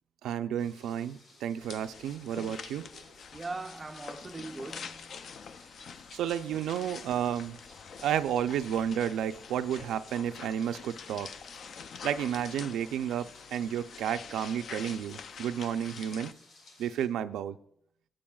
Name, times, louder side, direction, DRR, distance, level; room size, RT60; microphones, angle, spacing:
voice 1, 0.2-2.9 6.1-7.6 8.0-11.3 12.0-16.3 16.8-17.6, right 9 dB, 90° right, 0.4 m, -32 dB
sound 1, 0.6-17.1, left 2 dB, 75° left, 2.9 m, -58 dB
sound 2, 1.6-16.3, left 6 dB, 50° left, 0.4 m, -46 dB
voice 2, 3.3-5.4, right 3 dB, 20° right, 0.4 m, -41 dB
16.0 x 8.7 x 2.3 m
cardioid pair, 130°, 0 cm